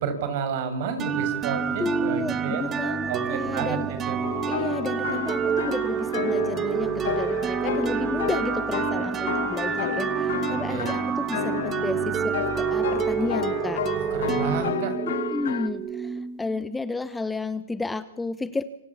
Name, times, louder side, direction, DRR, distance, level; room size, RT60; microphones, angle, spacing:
voice 1, 0.0-4.2 10.5-10.9 14.0-15.0, right 6 dB, 55° right, 9 dB, 6.5 m, -31 dB
sound 1, 1.0-16.6, right 7 dB, 20° right, 1.4 m, -28 dB
voice 2, 1.8-3.9 4.5-13.8 15.3-18.6, left 3 dB, 10° left, 14 dB, 1.1 m, -32 dB
sound 2, 4.2-15.7, left 10 dB, 70° left, 2.0 m, -32 dB
28.0 x 26.5 x 7.3 m, 0.85 s
hypercardioid pair, 125°, 0 cm